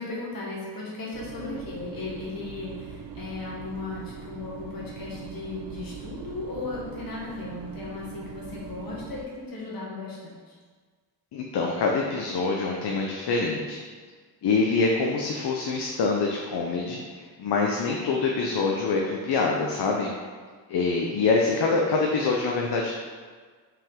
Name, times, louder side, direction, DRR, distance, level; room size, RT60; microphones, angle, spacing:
voice 1, 0.0-10.5, left 3 dB, 55° left, -5 dB, 1.4 m, -36 dB
sound 1, 1.1-9.2, right 7 dB, 60° right, 0.5 m, -41 dB
voice 2, 11.3-13.8 14.4-20.1 20.7-22.9, left 4 dB, 75° left, -1 dB, 0.8 m, -25 dB
5.5 x 5.2 x 3.7 m, 1.5 s
wide cardioid pair, 130°, 41 cm